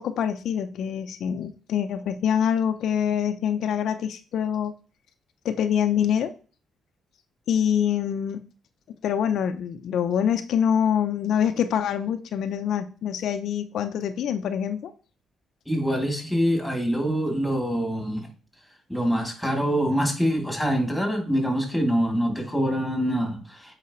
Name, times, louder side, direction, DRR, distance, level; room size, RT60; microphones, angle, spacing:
voice 1, 0.0-4.7 5.4-6.3 7.5-8.4 9.0-14.9, left 8 dB, 75° left, 7 dB, 0.6 m, -25 dB
voice 2, 15.6-18.3 18.9-23.7, equal, ahead, 1 dB, 3.1 m, -25 dB
8.3 x 4.9 x 3.2 m, 0.37 s
cardioid pair, 90°, 0 cm